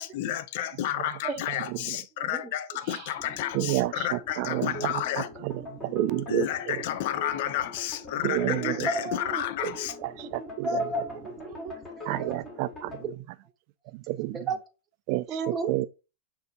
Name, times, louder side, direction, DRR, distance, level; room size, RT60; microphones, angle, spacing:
voice 1, 0.0-5.3 6.3-10.0, left 12 dB, 60° left, 0.4 m, -31 dB
sound 1, 3.2-13.0, left 3 dB, 20° left, 1.3 m, -42 dB
voice 2, 3.5-6.8 8.2-8.9 10.0-10.8 12.1-13.0 13.9-14.5 15.1-15.9, right 17 dB, 50° right, 0.3 m, -30 dB
voice 3, 8.6-9.4 10.2-12.3 13.0-13.1 14.3-14.6 15.3-15.9, right 2 dB, 20° right, 0.8 m, -33 dB
6.5 x 2.7 x 2.3 m
hypercardioid pair, 130°, 0 cm